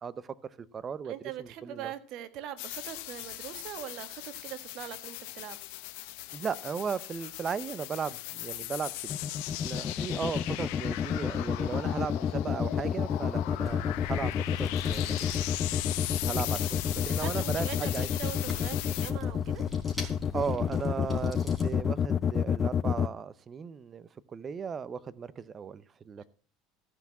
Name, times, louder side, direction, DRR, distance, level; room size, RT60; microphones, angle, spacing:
voice 1, 0.0-1.1 1.4-1.9 6.3-9.1 9.6-15.2 16.1-18.1 20.3-26.2, right 6 dB, 30° right, 17 dB, 0.8 m, -36 dB
voice 2, 1.0-5.6 17.1-19.6 26.2-26.3, right 11 dB, 60° right, 11 dB, 1.5 m, -42 dB
sound 1, 2.6-19.1, left 16 dB, 75° left, 1.1 m, -39 dB
sound 2, 9.1-23.1, left 8 dB, 30° left, 0.5 m, -29 dB
Chewing mastication, 13.6-21.8, left 2 dB, 5° left, 3.7 m, -42 dB
14.5 x 5.9 x 7.3 m, 0.41 s
supercardioid pair, 120°, 0 cm